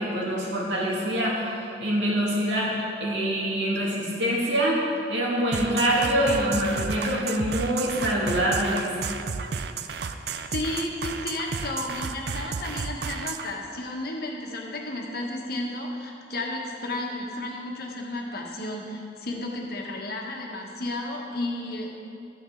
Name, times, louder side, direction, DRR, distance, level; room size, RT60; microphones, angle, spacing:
voice 1, 0.0-2.7 3.0-4.8 5.1-8.9, right 1 dB, 80° right, -4 dB, 2.4 m, -25 dB
sound 1, 5.5-13.5, right 5 dB, 65° right, 0.5 m, -32 dB
voice 2, 10.3-21.9, left 2 dB, 60° left, 0 dB, 1.3 m, -33 dB
12.5 x 8.9 x 3.9 m, 2.5 s
head